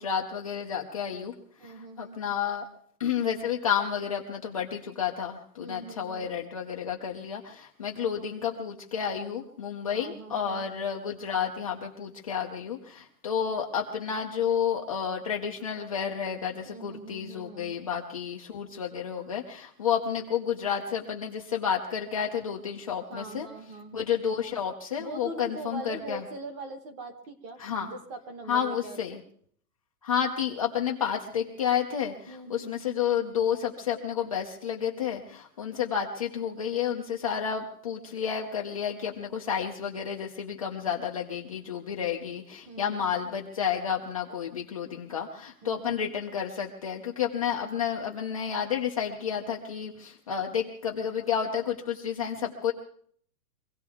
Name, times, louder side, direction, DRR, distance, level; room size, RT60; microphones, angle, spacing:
voice 1, 0.0-1.3 1.6-2.7 3.0-23.5 23.9-26.2 27.6-27.9 28.5-29.2 30.0-52.7, left 8 dB, 25° left, -1 dB, 0.6 m, -31 dB
voice 2, 1.6-2.2 5.6-6.3 9.9-10.7 16.6-17.9 23.1-24.1 25.0-29.2 32.3-32.8 42.7-43.1 45.6-46.0, right 2 dB, 20° right, 7 dB, 1.0 m, -42 dB
24.0 x 16.5 x 3.5 m, 0.62 s
hypercardioid pair, 175°, 46 cm